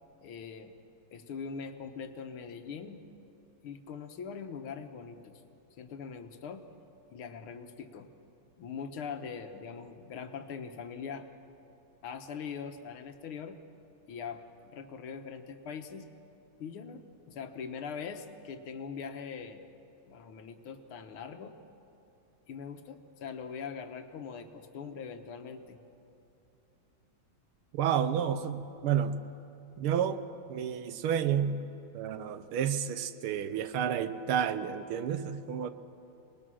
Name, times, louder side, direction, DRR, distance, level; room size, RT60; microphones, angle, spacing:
voice 1, 0.2-0.7 1.1-3.0 3.6-5.4 5.8-6.7 7.1-8.1 8.6-11.3 12.0-13.6 14.1-16.1 16.6-19.7 20.1-21.6 22.5-25.8, left 6 dB, 85° left, 7 dB, 2.0 m, -42 dB
voice 2, 27.7-29.2 29.8-31.6 31.9-35.7, right 8 dB, 85° right, 11 dB, 1.7 m, -30 dB
25.5 x 20.0 x 6.3 m, 2.8 s
omnidirectional pair, 2.3 m